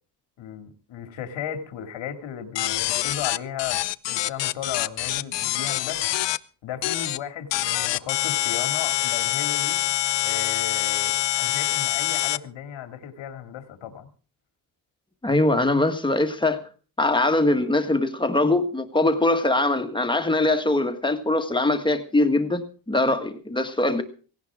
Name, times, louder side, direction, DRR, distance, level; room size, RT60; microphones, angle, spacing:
voice 1, 0.4-6.1 6.6-9.8 10.2-14.1, left 9 dB, 90° left, 2.4 m, -35 dB
sound 1, 2.6-6.4 6.8-7.2 7.5-12.4, left 15 dB, 70° left, 0.7 m, -25 dB
voice 2, 15.2-16.6 17.0-24.0, left 2 dB, 10° left, 1.6 m, -22 dB
17.5 x 17.5 x 3.6 m
cardioid pair, 160°, 44 cm